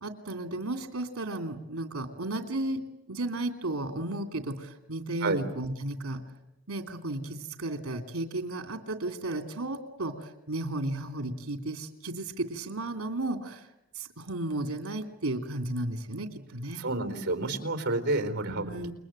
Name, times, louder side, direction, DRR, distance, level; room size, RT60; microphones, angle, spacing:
voice 1, 0.0-2.8 3.1-6.2 6.7-13.7 13.9-16.9 18.5-18.9, right 2 dB, 70° right, 6 dB, 2.9 m, -34 dB
voice 2, 16.8-18.7, right 2 dB, 50° right, 8 dB, 4.2 m, -29 dB
29.0 x 22.0 x 9.0 m, 0.86 s
head